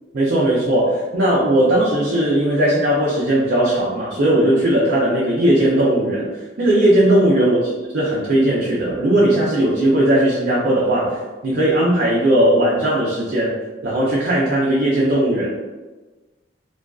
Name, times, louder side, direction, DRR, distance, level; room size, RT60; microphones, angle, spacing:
voice 1, 0.1-6.3 6.6-7.6 7.9-13.5 13.8-15.5, right 1 dB, 60° right, -7 dB, 0.5 m, -17 dB
2.4 x 2.2 x 2.3 m, 1.2 s
head